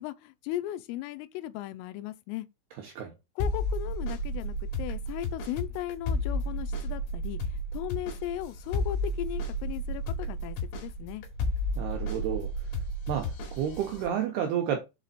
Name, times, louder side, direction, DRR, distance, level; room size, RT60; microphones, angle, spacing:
voice 1, 0.0-2.5 3.4-11.2, left 13 dB, 85° left, 3.2 m, -37 dB
voice 2, 2.8-3.1 11.8-12.5 13.1-14.8, right 9 dB, 80° right, 2.3 m, -31 dB
sound 1, 3.4-14.1, left 1 dB, 65° left, 4.4 m, -32 dB
8.0 x 4.0 x 4.2 m
omnidirectional pair, 5.8 m